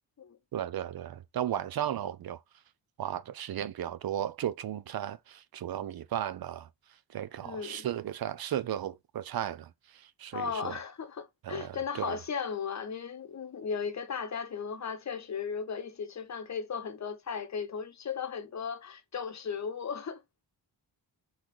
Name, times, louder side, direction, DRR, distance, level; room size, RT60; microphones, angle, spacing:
voice 1, 0.5-2.4 3.0-6.7 7.1-10.8 11.4-12.2, right 11 dB, 65° right, 0.5 m, -35 dB
voice 2, 7.4-7.9 10.3-20.2, left 6 dB, 45° left, 0.8 m, -36 dB
4.1 x 3.8 x 3.0 m
wide cardioid pair, 140°, 40 cm